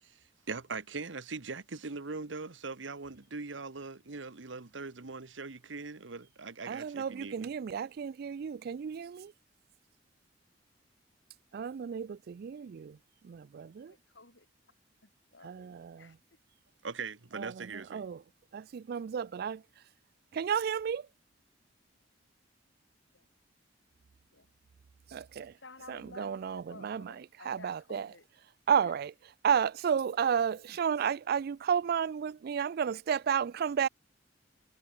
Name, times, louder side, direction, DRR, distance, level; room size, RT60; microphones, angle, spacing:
voice 1, 0.5-7.5 16.8-18.0, right 4 dB, 85° right, 1.2 m, -41 dB
voice 2, 6.7-9.3 11.5-12.9 13.3-13.9 15.4-16.1 17.4-17.5 17.9-18.2 18.5-19.6 20.3-21.0 25.1-25.5 25.9-27.0 27.5-28.1 28.7-29.1 29.4-33.9, right 7 dB, 55° right, 0.3 m, -32 dB
voice 3, 13.8-14.5 15.0-16.2 24.3-24.5 25.6-28.3 28.8-29.0, left 3 dB, 75° left, 5.8 m, -54 dB
head